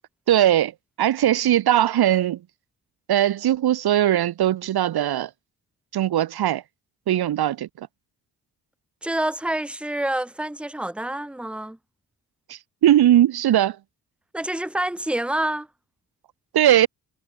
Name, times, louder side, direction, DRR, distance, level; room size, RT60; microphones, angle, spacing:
voice 1, 0.3-0.7 1.0-2.4 3.1-5.3 5.9-6.6 7.1-7.9 12.5-13.8 16.5-16.9, right 12 dB, 70° right, 0.9 m, -19 dB
voice 2, 9.0-11.8 14.3-15.7, right 1 dB, 5° right, 1.2 m, -27 dB
cardioid pair, 65°, 40 cm